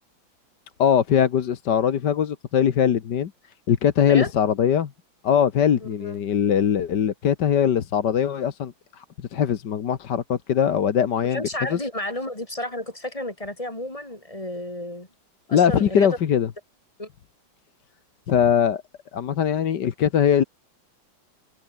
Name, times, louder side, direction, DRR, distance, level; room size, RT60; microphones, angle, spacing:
voice 1, 0.8-3.3 3.7-4.9 5.2-9.0 9.3-11.4 11.7-11.8 15.5-16.5 18.3-18.8 19.1-20.4, left 8 dB, 65° left, 1.9 m, -21 dB
voice 2, 5.8-6.2 11.3-15.1 15.5-16.2 17.0-17.1, left 1 dB, 15° left, 2.9 m, -32 dB
omnidirectional pair, 2.1 m